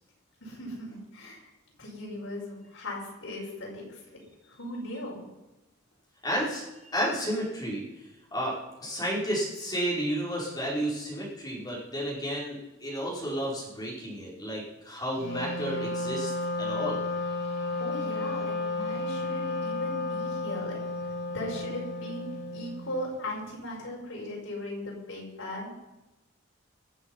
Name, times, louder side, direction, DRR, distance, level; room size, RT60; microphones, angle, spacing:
voice 1, 0.4-1.5 1.8-4.2 4.5-5.3 17.8-20.8 21.3-25.7, left 1 dB, 75° left, -3 dB, 5.8 m, -38 dB
voice 2, 6.2-17.0, equal, 20° left, -5 dB, 5.0 m, -32 dB
Wind instrument woodwind instrument, 15.2-23.0, left 2 dB, 55° left, 3.0 m, -32 dB
24.0 x 8.0 x 5.5 m, 1.0 s
head